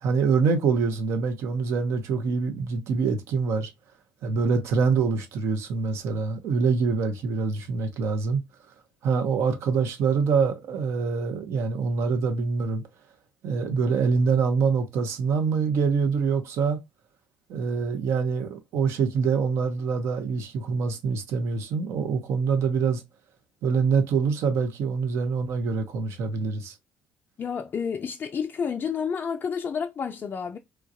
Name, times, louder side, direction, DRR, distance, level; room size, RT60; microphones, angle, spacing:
voice 1, 0.0-3.7 4.2-8.4 9.0-12.8 13.4-16.8 17.5-23.0 23.6-26.7, right 5 dB, 70° right, 0.7 m, -25 dB
voice 2, 27.4-30.6, left 6 dB, 40° left, 0.3 m, -30 dB
3.1 x 2.3 x 2.5 m
hypercardioid pair, 55°, 5 cm